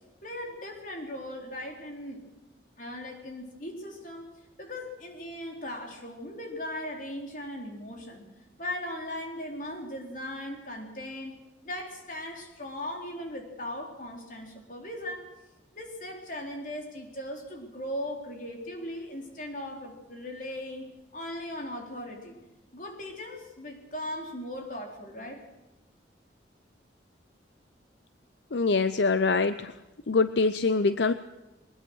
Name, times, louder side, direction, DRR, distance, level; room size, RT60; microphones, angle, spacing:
voice 1, 0.2-2.3 2.8-4.3 4.6-8.3 8.6-11.4 11.6-15.3 15.7-22.4 22.7-25.5, left 1 dB, 45° left, 2 dB, 4.0 m, -38 dB
voice 2, 28.5-29.7 30.1-31.1, left 4 dB, 70° left, 12 dB, 0.6 m, -24 dB
22.5 x 20.0 x 6.3 m, 1.0 s
head